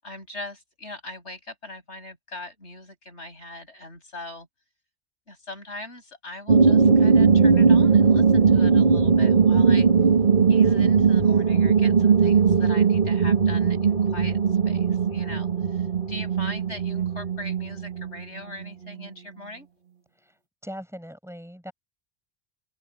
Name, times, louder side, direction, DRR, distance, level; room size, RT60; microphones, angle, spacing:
voice 1, 0.0-4.5 5.3-9.9 10.5-19.7, left 2 dB, 90° left, 8.1 m, -41 dB
sound 1, 6.5-19.1, right 5 dB, 50° right, 2.2 m, -19 dB
voice 2, 20.6-21.7, equal, ahead, 7.8 m, -39 dB
open air
omnidirectional pair, 1.1 m